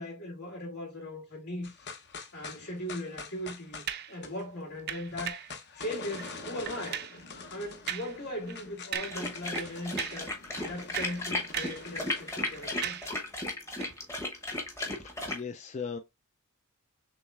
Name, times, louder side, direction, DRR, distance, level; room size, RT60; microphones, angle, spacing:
voice 1, 0.0-1.8 2.3-5.4 5.8-7.0 7.5-10.3 10.6-13.0, left 1 dB, 80° left, 3.1 m, -39 dB
sound 1, 1.6-12.9, left 4 dB, 50° left, 0.8 m, -46 dB
sound 2, 3.9-4.2 4.9-5.5 6.1-6.3 6.7-7.2 7.9-8.2 8.5-8.6 8.9-9.3 9.5-10.3 10.7-11.9 12.2-13.2 13.8-13.9, right 10 dB, 45° right, 0.4 m, -38 dB
sound 3, 8.9-15.4, left 2 dB, 15° left, 0.8 m, -35 dB
voice 2, 14.8-16.0, left 5 dB, 30° left, 0.3 m, -39 dB
6.2 x 3.2 x 2.3 m
head